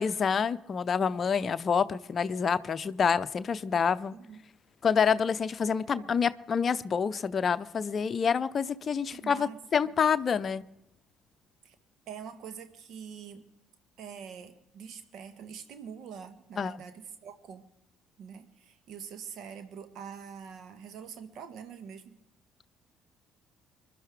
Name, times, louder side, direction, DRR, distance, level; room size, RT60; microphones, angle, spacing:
voice 1, 0.0-4.1 4.8-10.6 16.6-16.7, left 6 dB, 40° left, 0.6 m, -27 dB
voice 2, 4.1-4.4 5.9-6.1 9.0-9.6 11.6-11.7 12.1-13.4 14.0-17.6 18.2-22.2, right 7 dB, 55° right, 1.4 m, -45 dB
26.5 x 11.5 x 3.5 m
figure-of-eight pair, 50°, 0 cm